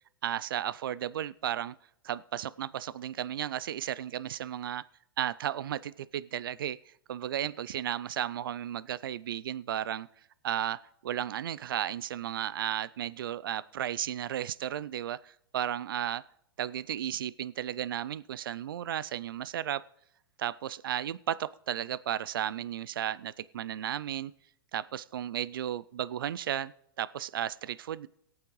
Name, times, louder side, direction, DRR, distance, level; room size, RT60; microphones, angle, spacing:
voice 1, 0.2-1.7 2.0-4.8 5.2-10.1 10.4-16.2 16.6-19.8 20.4-24.3 24.7-26.7 27.0-28.1, right 11 dB, 75° right, 18 dB, 0.4 m, -34 dB
21.5 x 8.7 x 3.1 m, 0.73 s
hypercardioid pair, 110°, 12 cm